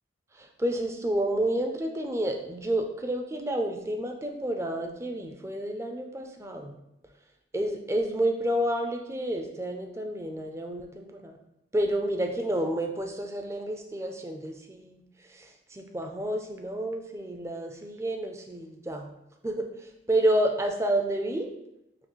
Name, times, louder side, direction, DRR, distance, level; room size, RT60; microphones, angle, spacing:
voice 1, 0.4-6.7 7.5-11.4 11.7-15.0 15.3-19.1 19.4-19.7 20.1-21.5, right 1 dB, 15° right, 3 dB, 0.4 m, -30 dB
5.7 x 2.3 x 3.1 m, 0.83 s
head